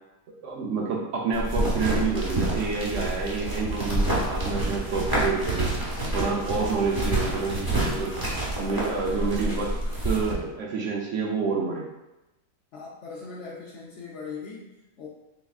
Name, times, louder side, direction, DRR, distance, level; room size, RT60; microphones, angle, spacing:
voice 1, 0.4-5.7 6.1-8.1 8.6-9.7 10.0-11.9, right 4 dB, 65° right, -2 dB, 0.8 m, -28 dB
sound 1, 1.3-10.3, right 1 dB, 20° right, 0.7 m, -28 dB
voice 2, 12.7-15.1, left 4 dB, 60° left, -6 dB, 0.8 m, -40 dB
4.1 x 3.4 x 2.3 m, 0.96 s
omnidirectional pair, 1.6 m